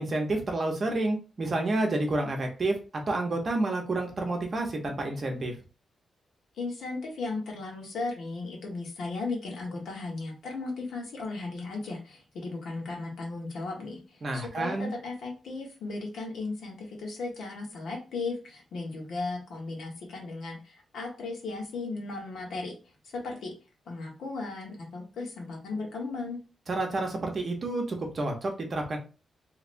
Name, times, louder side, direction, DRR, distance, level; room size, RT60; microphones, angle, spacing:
voice 1, 0.0-2.8 3.1-5.5 14.2-14.9 26.7-29.0, right 2 dB, 35° right, 3 dB, 0.8 m, -29 dB
voice 2, 6.6-22.7 23.1-23.5 23.9-26.4, left 3 dB, 75° left, -1 dB, 1.2 m, -36 dB
3.2 x 2.9 x 2.6 m, 0.33 s
wide cardioid pair, 145°, 0 cm